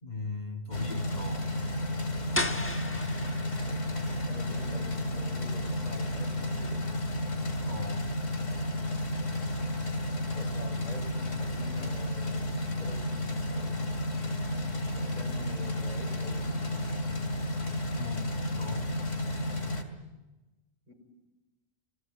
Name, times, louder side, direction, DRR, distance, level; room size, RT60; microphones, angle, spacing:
voice 1, 0.0-1.5 7.7-8.1 17.9-18.9, left 3 dB, 35° left, 5 dB, 2.1 m, -39 dB
sound 1, 0.7-19.8, left 1 dB, 75° left, 2.9 m, -32 dB
sound 2, 2.3-8.0, left 1 dB, 10° left, 1.2 m, -39 dB
voice 2, 3.7-6.8 10.3-13.8 14.9-16.6 20.9-21.0, equal, 30° right, 3 dB, 5.3 m, -47 dB
27.0 x 19.5 x 9.3 m, 1.1 s
omnidirectional pair, 1.3 m